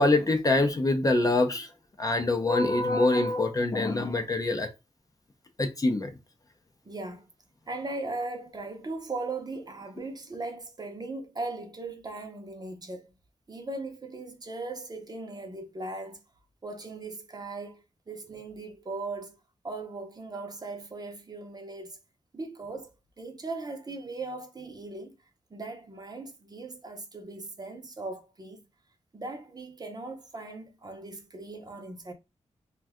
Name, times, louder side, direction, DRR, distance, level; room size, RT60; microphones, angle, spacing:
voice 1, 0.0-1.7 2.0-4.7 5.6-6.1, left 2 dB, 30° left, 0.5 m, -24 dB
voice 2, 6.8-7.3 7.7-13.1 13.5-16.2 16.6-19.4 19.6-22.0 22.3-22.9 23.2-25.2 25.5-28.6 29.1-32.1, right 3 dB, 35° right, 0.6 m, -38 dB
2.6 x 2.2 x 3.5 m
wide cardioid pair, 110°, 12 cm